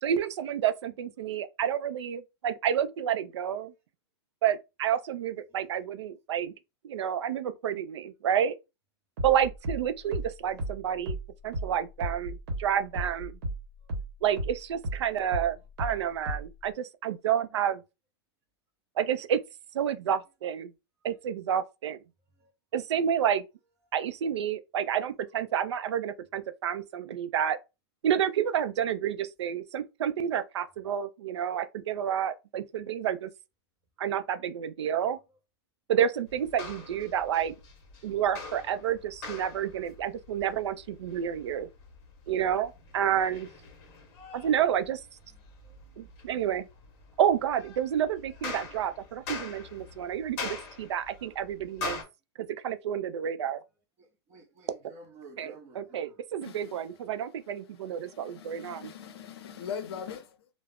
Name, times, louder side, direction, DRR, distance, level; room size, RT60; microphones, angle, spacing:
voice 1, 0.0-3.7 4.4-6.5 6.8-8.5 9.2-11.2 11.4-13.3 14.2-17.8 19.0-19.4 19.7-20.7 21.0-22.0 22.7-23.4 23.9-27.6 28.0-33.3 34.0-35.2 35.9-37.5 38.0-41.7 42.3-43.5 44.3-45.0 46.0-46.7 47.2-52.0 52.6-53.6 55.4-58.8, right 9 dB, 80° right, 0.4 m, -29 dB
sound 1, 9.2-14.1 14.4-16.6, right 1 dB, 50° right, 1.0 m, -34 dB
sound 2, 36.3-52.0, left 4 dB, 30° left, 0.8 m, -43 dB
voice 2, 54.0-56.2, right 3 dB, 20° right, 0.6 m, -52 dB
voice 3, 56.4-56.9 57.7-60.5, left 7 dB, 65° left, 0.6 m, -41 dB
2.3 x 2.0 x 3.4 m
supercardioid pair, 165°, 14 cm